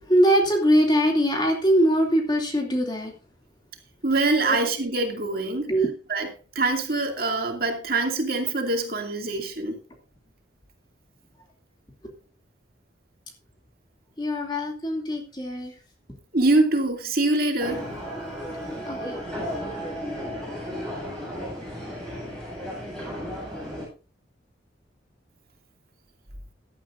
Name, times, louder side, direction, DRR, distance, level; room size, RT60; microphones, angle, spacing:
voice 1, 0.1-3.1 4.4-4.6 5.7-5.9 14.2-15.7 18.9-19.2, equal, 25° left, 2 dB, 2.7 m, -22 dB
voice 2, 4.0-5.7 6.1-6.3 6.5-9.8 16.3-17.9, right 2 dB, 50° right, 3 dB, 2.5 m, -24 dB
sound 1, 17.6-23.9, equal, 5° left, 8.0 m, -34 dB
16.5 x 12.0 x 2.6 m, 0.35 s
head